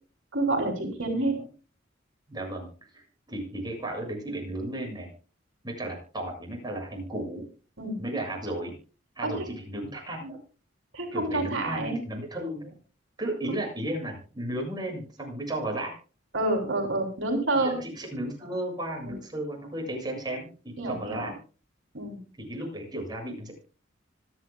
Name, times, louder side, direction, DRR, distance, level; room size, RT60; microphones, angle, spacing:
voice 1, 0.3-1.4 7.8-8.0 9.2-9.4 10.9-12.0 16.3-17.7 19.0-19.1 20.8-21.3 21.9-22.2, right 2 dB, 80° right, 2 dB, 3.3 m, -28 dB
voice 2, 2.3-2.7 2.9-5.1 5.6-7.4 8.0-8.7 9.2-10.4 11.1-12.7 13.2-15.9 17.6-21.4 22.5-23.5, right 1 dB, 20° right, 0 dB, 7.3 m, -34 dB
25.5 x 9.8 x 2.3 m, 0.36 s
head